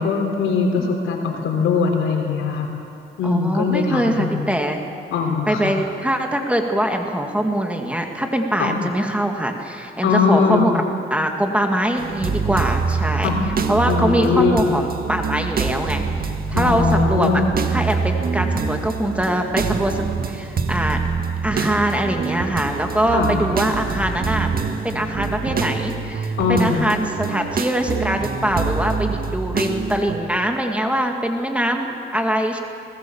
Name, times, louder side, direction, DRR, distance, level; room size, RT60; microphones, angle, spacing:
voice 1, 0.0-2.7 3.2-4.5 5.1-5.8 8.6-8.8 10.0-10.7 13.2-13.4 13.9-14.6 16.5-17.5 23.1-23.3 26.4-26.8, left 5 dB, 80° left, 2 dB, 3.8 m, -21 dB
voice 2, 3.2-4.8 5.5-10.7 11.1-13.3 13.7-17.4 17.7-21.0 21.4-24.5 24.8-32.6, right 1 dB, 5° right, 3 dB, 2.1 m, -23 dB
sound 1, 12.0-30.2, right 5 dB, 50° right, 1.7 m, -25 dB
22.5 x 19.0 x 7.2 m, 2.6 s
cardioid pair, 90°, 20 cm